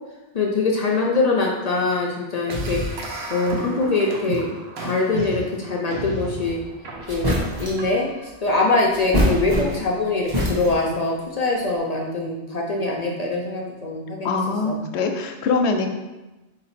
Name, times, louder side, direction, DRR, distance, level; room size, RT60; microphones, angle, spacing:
voice 1, 0.3-2.8 3.3-4.5 4.8-6.6 7.1-14.4 14.6-14.8, left 3 dB, 55° left, -1 dB, 0.5 m, -23 dB
sound 1, 2.5-8.3, right 2 dB, 70° right, 1.0 m, -32 dB
sound 2, 6.6-6.7 7.1-7.9 8.9-10.0 10.3-11.0, left 1 dB, 20° right, 0.9 m, -24 dB
voice 2, 14.2-15.9, left 4 dB, 80° left, 5 dB, 0.9 m, -23 dB
4.4 x 2.9 x 4.1 m, 1.1 s
omnidirectional pair, 1.1 m